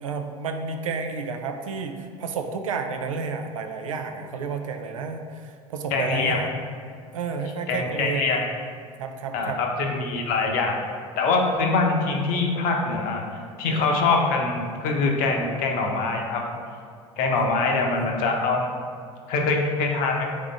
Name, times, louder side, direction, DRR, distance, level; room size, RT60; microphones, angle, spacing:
voice 1, 0.0-6.5 7.1-8.4 9.0-9.6 13.7-13.9 17.3-18.1, right 5 dB, 85° right, 5 dB, 0.4 m, -31 dB
voice 2, 5.9-6.4 7.7-8.5 9.3-10.8 11.2-16.4 17.2-18.7 19.3-20.3, left 3 dB, 55° left, 1 dB, 0.8 m, -24 dB
3.7 x 3.6 x 3.8 m, 2.2 s
hypercardioid pair, 75°, 17 cm